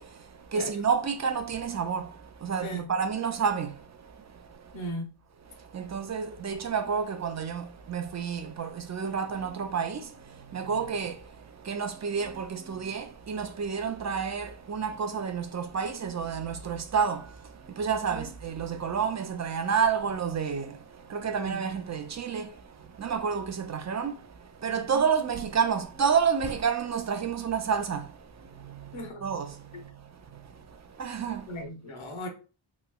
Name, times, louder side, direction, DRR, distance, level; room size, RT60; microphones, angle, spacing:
voice 1, 0.0-4.9 5.4-31.6, right 6 dB, 40° right, 0.4 m, -30 dB
voice 2, 4.7-5.1 18.1-18.3 21.2-21.6 28.9-29.2 29.7-29.8 31.5-32.3, equal, 70° left, 0.9 m, -37 dB
3.0 x 2.9 x 2.3 m
wide cardioid pair, 110°, 48 cm